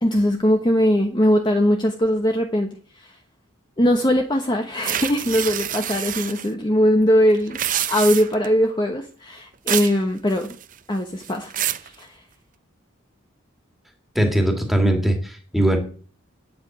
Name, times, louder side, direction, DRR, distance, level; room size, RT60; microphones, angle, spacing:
voice 1, 0.0-3.2 3.8-10.6 10.9-11.5 11.8-12.2, equal, 20° left, 3 dB, 1.0 m, -20 dB
sound 1, 4.8-6.5 7.4-8.5 9.7-10.0 10.3-10.8 11.2-11.9, right 11 dB, 40° right, 0.6 m, -27 dB
voice 2, 14.1-15.8, right 1 dB, ahead, 3 dB, 2.3 m, -20 dB
9.0 x 7.9 x 9.1 m, 0.43 s
head